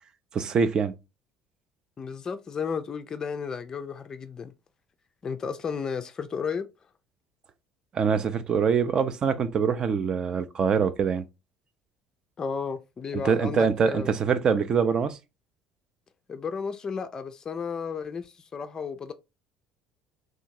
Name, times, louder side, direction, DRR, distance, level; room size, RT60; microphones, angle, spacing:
voice 1, 0.3-0.9 7.9-11.2 13.2-15.2, right 6 dB, 35° right, 0.4 m, -24 dB
voice 2, 2.0-4.5 5.2-6.7 12.4-14.1 16.3-19.1, left 6 dB, 30° left, 0.4 m, -33 dB
3.5 x 2.4 x 2.7 m
figure-of-eight pair, 55°, 2 cm